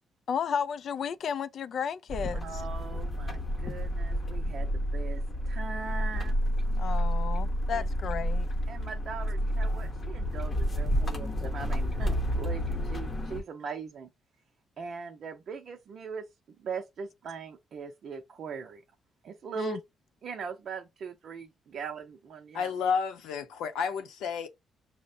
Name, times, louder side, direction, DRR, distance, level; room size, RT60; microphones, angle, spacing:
voice 1, 0.3-2.6 6.8-8.5 19.6-19.8, left 7 dB, 60° left, 0.3 m, -33 dB
sound 1, 2.1-13.4, equal, 35° left, 0.8 m, -30 dB
voice 2, 2.3-6.4 7.7-7.9 8.7-14.1 14.8-16.3 16.6-18.8 19.2-19.8 20.2-22.7, right 5 dB, 60° right, 0.6 m, -40 dB
voice 3, 22.5-24.5, left 6 dB, 90° left, 0.8 m, -31 dB
5.7 x 2.1 x 2.6 m
cardioid pair, 90°, 0 cm